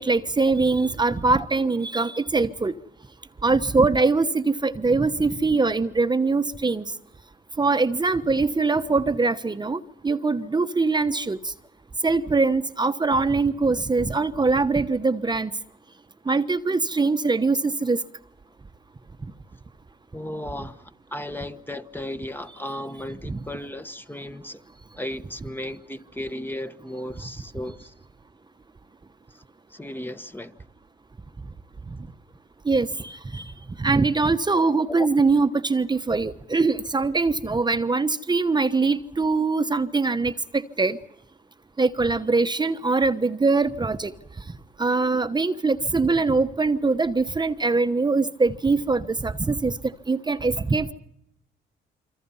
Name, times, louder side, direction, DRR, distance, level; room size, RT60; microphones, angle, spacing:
voice 1, 0.0-2.7 3.4-6.8 7.6-11.5 12.0-15.5 16.3-18.0 23.2-23.4 31.9-32.0 32.6-33.4 33.8-41.0 41.8-44.1 44.8-49.7 50.1-50.9, right 3 dB, 20° right, 1.1 m, -22 dB
voice 2, 20.1-24.6 25.0-27.9 29.3-29.4 29.7-30.6 35.0-35.1, left 1 dB, 10° left, 1.2 m, -35 dB
27.0 x 25.5 x 5.6 m
cardioid pair, 90°, 20 cm